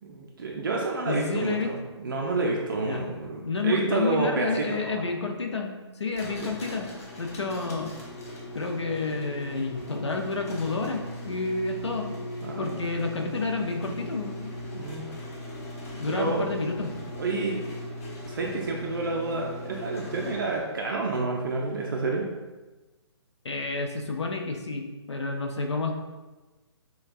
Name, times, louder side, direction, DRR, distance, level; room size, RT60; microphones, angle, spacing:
voice 1, 0.0-5.0 6.4-6.5 12.4-12.8 14.7-15.0 16.1-16.7 17.2-17.6 18.2-22.3, right 3 dB, 45° right, -1 dB, 0.5 m, -29 dB
voice 2, 1.1-1.7 2.8-3.1 3.4-6.9 7.2-7.9 8.5-12.1 12.6-14.5 16.0-16.9 23.4-25.9, left 3 dB, 70° left, 3 dB, 0.6 m, -30 dB
sound 1, 6.1-20.8, left 1 dB, 30° left, 0.6 m, -39 dB
5.1 x 2.3 x 2.4 m, 1.2 s
figure-of-eight pair, 135°, 15 cm